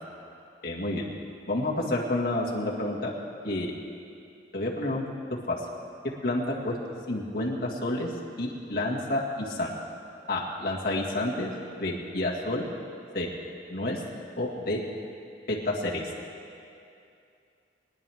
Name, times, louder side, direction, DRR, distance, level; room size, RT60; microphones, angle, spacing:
voice 1, 0.6-1.0 1.5-3.1 3.4-3.7 4.5-5.0 5.5-5.6 6.2-6.8 7.1-8.1 8.4-9.7 10.3-11.5 11.8-12.6 13.1-13.3 13.7-14.0 14.4-14.8 15.5-16.0, left 1 dB, 55° left, -3 dB, 2.1 m, -29 dB
23.5 x 11.0 x 3.6 m, 2.6 s
head